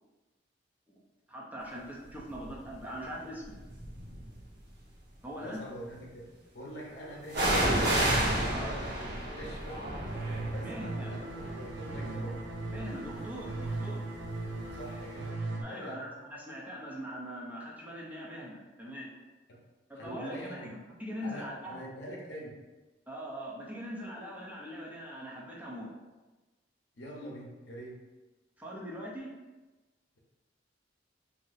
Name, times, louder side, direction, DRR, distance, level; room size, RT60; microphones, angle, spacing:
voice 1, 1.3-3.6 5.2-5.6 8.5-8.7 10.6-11.1 12.7-14.0 15.6-19.1 19.9-20.6 21.0-21.8 23.1-25.9 28.6-29.3, equal, 10° right, -5 dB, 0.6 m, -41 dB
sound 1, 2.3-2.7 3.5-4.4 7.3-14.9 15.2-15.3, right 1 dB, 60° right, 0.8 m, -32 dB
voice 2, 5.4-6.3 6.5-7.6 8.3-9.8 10.5-12.4 14.7-15.4 15.6-16.1 19.5-19.6 20.0-20.7 21.2-22.6 26.9-28.0, equal, 70° left, -2 dB, 0.7 m, -44 dB
sound 2, 10.1-15.6, right 2 dB, 85° right, 0.4 m, -38 dB
2.6 x 2.0 x 3.9 m, 1.2 s
head